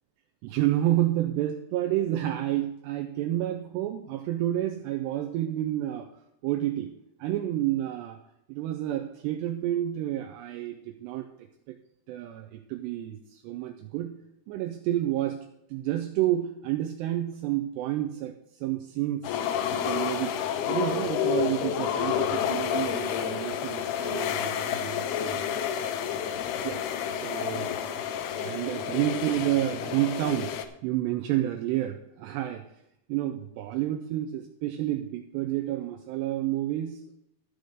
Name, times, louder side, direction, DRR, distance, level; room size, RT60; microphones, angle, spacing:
voice 1, 0.4-6.1 6.4-6.9 7.2-8.2 8.5-11.8 12.1-14.2 14.5-19.4 19.7-20.4 20.7-25.5 26.6-27.7 28.4-30.5 30.8-32.6 33.1-37.2, right 13 dB, 80° right, 5 dB, 2.6 m, -30 dB
sound 1, 19.2-30.6, left 8 dB, 75° left, 2.5 m, -30 dB
13.0 x 5.3 x 6.4 m, 0.81 s
omnidirectional pair, 5.2 m